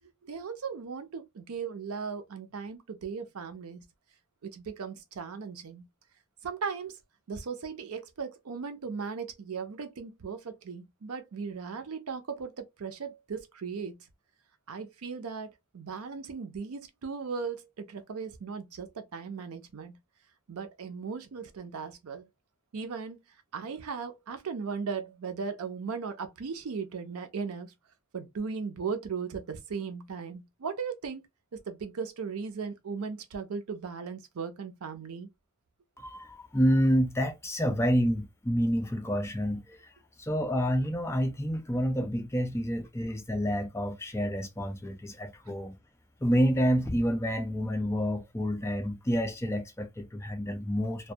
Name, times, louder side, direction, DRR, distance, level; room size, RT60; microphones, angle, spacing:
voice 1, 0.2-3.8 4.4-5.8 6.4-7.0 7.3-14.0 14.7-20.0 20.5-22.2 22.7-23.2 23.5-27.7 28.1-31.2 31.5-35.3 45.5-45.6, right 5 dB, 90° right, 0.5 m, -37 dB
voice 2, 36.0-39.8 40.2-45.8 46.2-51.1, equal, 10° left, 0.3 m, -28 dB
2.2 x 2.1 x 2.6 m
head